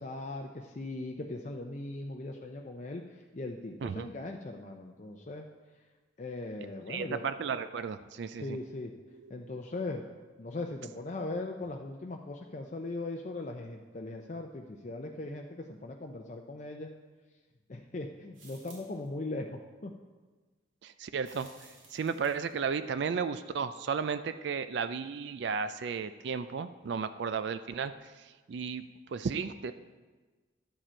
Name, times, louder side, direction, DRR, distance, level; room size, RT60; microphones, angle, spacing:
voice 1, 0.0-5.5 6.2-7.2 8.4-8.9 9.3-10.0 10.4-16.9 17.7-19.9, left 2 dB, 40° left, 2 dB, 0.5 m, -39 dB
voice 2, 6.9-8.6 20.8-21.5 21.9-29.7, right 6 dB, 60° right, 11 dB, 0.4 m, -34 dB
sound 1, 18.3-19.1 21.2-22.6, right 3 dB, 80° right, 3.0 m, -56 dB
11.0 x 7.5 x 4.4 m, 1.3 s
head